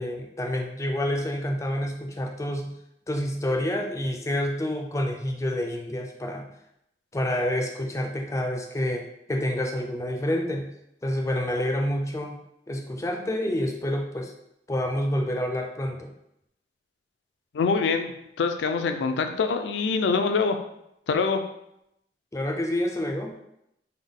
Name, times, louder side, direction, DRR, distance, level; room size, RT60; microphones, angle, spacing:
voice 1, 0.0-2.7 3.1-6.5 7.1-10.7 11.0-12.4 12.7-14.3 14.7-16.1 22.3-23.3, left 1 dB, 15° left, 3 dB, 0.3 m, -28 dB
voice 2, 17.5-18.1 18.4-20.6 21.1-21.4, left 4 dB, 85° left, 7 dB, 0.4 m, -24 dB
3.4 x 2.2 x 3.6 m, 0.80 s
head